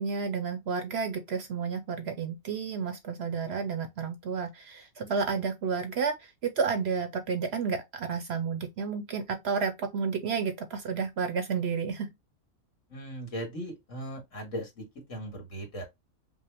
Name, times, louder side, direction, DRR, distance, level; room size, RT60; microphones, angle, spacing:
voice 1, 0.0-12.1, right 5 dB, 60° right, 0.7 m, -31 dB
voice 2, 12.9-15.8, right 1 dB, 65° left, 2.1 m, -38 dB
5.3 x 2.1 x 3.3 m
omnidirectional pair, 1.4 m